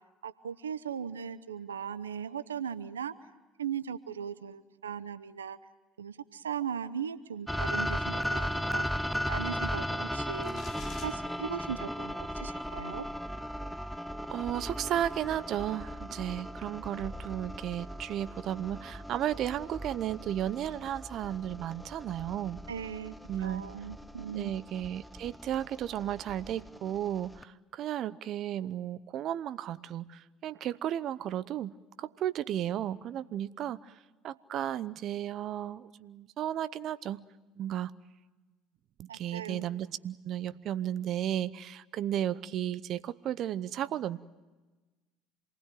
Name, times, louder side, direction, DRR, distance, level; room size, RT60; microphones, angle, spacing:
voice 1, 0.2-3.1 3.6-5.6 6.0-8.9 9.3-10.6 11.0-13.1 22.7-23.1 23.4-24.5 39.1-39.6, right 8 dB, 90° right, 13 dB, 0.7 m, -38 dB
sound 1, 7.5-27.4, equal, ahead, 0.9 m, -37 dB
sound 2, 10.4-11.1, left 4 dB, 50° left, 4.3 m, -47 dB
voice 2, 14.3-22.6 23.3-23.6 24.3-37.2 37.6-37.9 39.0-44.2, right 11 dB, 55° right, 16 dB, 0.8 m, -34 dB
27.5 x 19.5 x 9.2 m, 1.2 s
hypercardioid pair, 65°, 0 cm